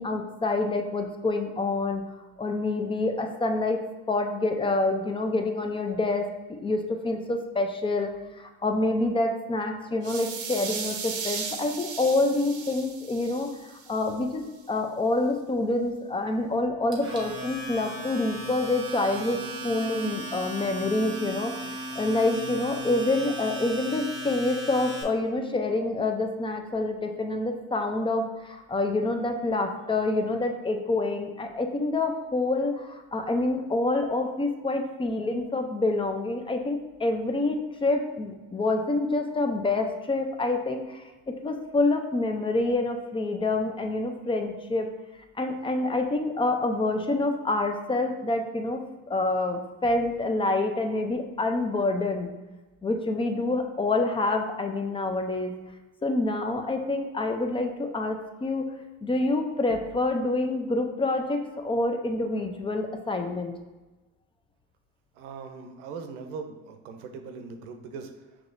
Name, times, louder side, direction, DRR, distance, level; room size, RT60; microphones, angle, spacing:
voice 1, 0.0-2.0 2.4-3.8 4.1-6.2 6.5-8.1 8.4-14.4 14.7-44.9 45.4-52.3 52.8-55.5 56.0-58.7 59.0-63.5, left 2 dB, 15° left, 5 dB, 0.4 m, -27 dB
sound 1, 10.0-14.1, right 6 dB, 45° right, 0.7 m, -36 dB
Domestic sounds home sounds, 16.9-25.0, right 1 dB, 15° right, 1.1 m, -36 dB
voice 2, 65.1-68.1, right 5 dB, 85° right, 6 dB, 0.7 m, -40 dB
5.9 x 3.0 x 2.5 m, 1.1 s
supercardioid pair, 100°, 35 cm